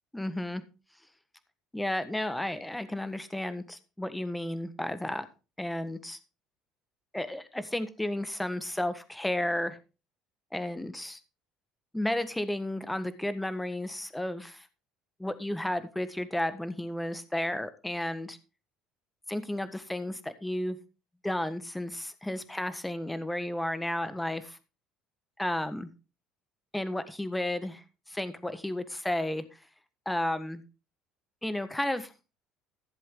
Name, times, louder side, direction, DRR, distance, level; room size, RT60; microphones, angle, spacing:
voice 1, 0.1-0.6 1.7-5.3 5.6-6.2 7.1-9.8 10.5-11.2 11.9-14.7 15.2-18.4 19.3-20.8 21.2-24.6 25.4-25.9 26.7-29.6 30.0-30.6 31.4-32.1, left 1 dB, 5° left, 11 dB, 1.4 m, -33 dB
15.0 x 7.5 x 3.9 m, 0.31 s
supercardioid pair, 105°, 0 cm